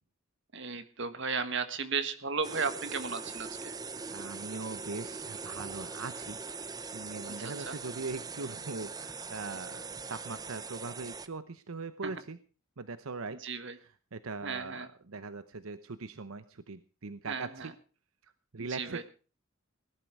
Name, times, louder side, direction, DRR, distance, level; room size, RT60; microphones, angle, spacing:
voice 1, 0.5-3.7 7.2-7.7 13.4-13.7 14.4-14.9 17.3-17.7 18.6-19.0, right 5 dB, 60° right, 10 dB, 1.6 m, -35 dB
sound 1, 2.4-11.3, right 4 dB, 20° right, 0.7 m, -41 dB
voice 2, 4.1-6.4 6.9-12.4 12.8-13.4 13.8-17.7 18.2-19.0, right 4 dB, 85° right, 12 dB, 0.9 m, -41 dB
18.0 x 11.5 x 4.8 m, 0.37 s
head